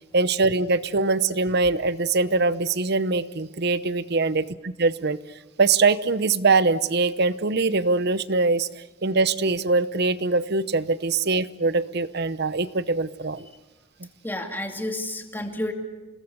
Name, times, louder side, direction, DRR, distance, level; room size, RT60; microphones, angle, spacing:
voice 1, 0.1-5.2 5.6-13.5, right 3 dB, 50° right, 15 dB, 0.9 m, -23 dB
voice 2, 14.2-15.7, left 1 dB, 10° left, 4 dB, 2.5 m, -30 dB
29.0 x 19.5 x 8.1 m, 1.1 s
head